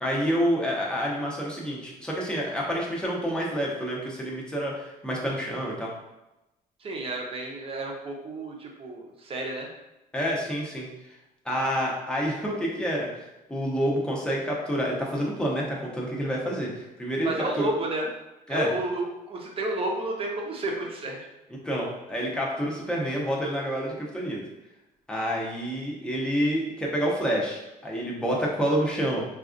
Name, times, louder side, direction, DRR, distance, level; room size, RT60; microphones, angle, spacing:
voice 1, 0.0-5.9 10.1-10.9 11.4-17.7 18.5-18.7 21.6-24.4 25.1-29.3, equal, 5° left, -3 dB, 0.8 m, -28 dB
voice 2, 6.8-9.7 17.2-18.1 18.5-21.2, right 2 dB, 35° right, 0 dB, 0.7 m, -31 dB
3.9 x 2.4 x 2.5 m, 0.97 s
cardioid pair, 110°, 17 cm